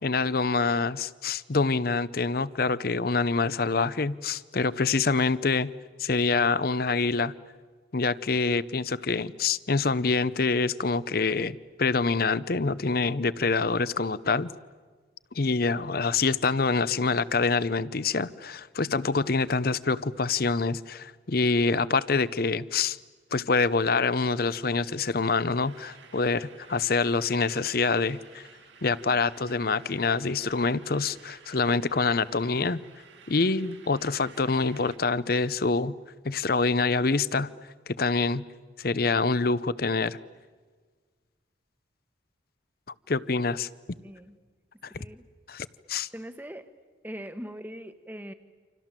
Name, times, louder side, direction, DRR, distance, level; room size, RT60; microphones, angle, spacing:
voice 1, 0.0-5.7 6.0-7.3 7.9-14.5 15.3-23.0 23.3-28.5 28.8-32.8 33.3-35.9 36.2-37.5 37.9-38.4 38.8-40.2 43.1-43.7 44.8-44.9 45.5-46.1, left 4 dB, 50° left, 18 dB, 0.7 m, -26 dB
sound 1, 25.6-35.0, right 6 dB, 75° right, 2.9 m, -53 dB
voice 2, 44.0-44.4 44.9-45.2 46.1-46.7 47.0-48.3, equal, 10° right, 10 dB, 1.2 m, -41 dB
29.0 x 27.0 x 7.5 m, 1.5 s
head